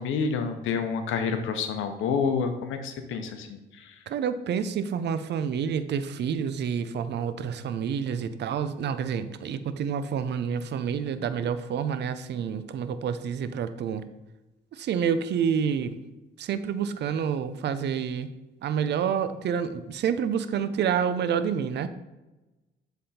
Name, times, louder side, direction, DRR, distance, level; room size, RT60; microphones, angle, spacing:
voice 1, 0.0-4.0, left 5 dB, 80° left, 7 dB, 0.8 m, -29 dB
voice 2, 4.1-14.0 14.7-16.0 16.4-18.3 18.6-21.9, right 7 dB, 60° right, 12 dB, 0.5 m, -28 dB
7.6 x 3.5 x 4.2 m, 1.1 s
cardioid pair, 90°, 20 cm